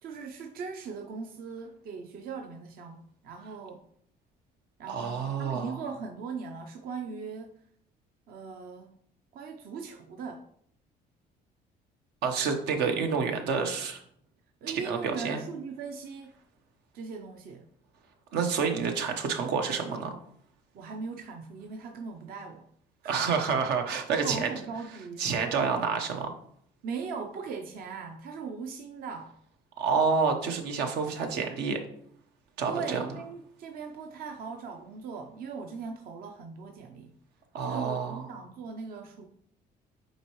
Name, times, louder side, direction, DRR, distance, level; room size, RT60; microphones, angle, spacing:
voice 1, 0.0-3.8 4.8-7.5 8.3-9.0 9.3-10.4 14.6-16.3 16.9-17.7 20.7-22.6 23.0-23.2 24.1-25.2 25.6-25.8 26.8-29.3 32.7-37.1 37.6-39.3, right 5 dB, 60° right, 3 dB, 0.7 m, -39 dB
voice 2, 4.9-5.8 12.2-14.0 14.7-15.4 18.3-20.2 23.0-24.5 25.2-26.3 29.8-31.8 32.6-33.0 37.5-38.3, right 5 dB, 85° right, 4 dB, 1.0 m, -28 dB
7.9 x 4.5 x 3.1 m, 0.66 s
cardioid pair, 110°, 17 cm